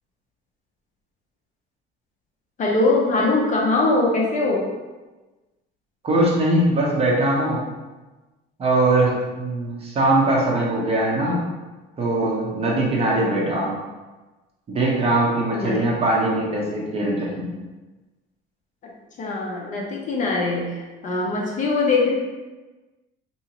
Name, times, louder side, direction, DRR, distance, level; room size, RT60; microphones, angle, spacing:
voice 1, 2.6-4.6 15.5-15.8 19.2-22.1, left 3 dB, 35° left, -2 dB, 0.6 m, -22 dB
voice 2, 6.0-7.6 8.6-11.5 12.0-13.8 14.7-17.6, right 1 dB, 30° right, -3 dB, 0.8 m, -21 dB
3.7 x 2.8 x 2.9 m, 1.2 s
cardioid pair, 150°, 21 cm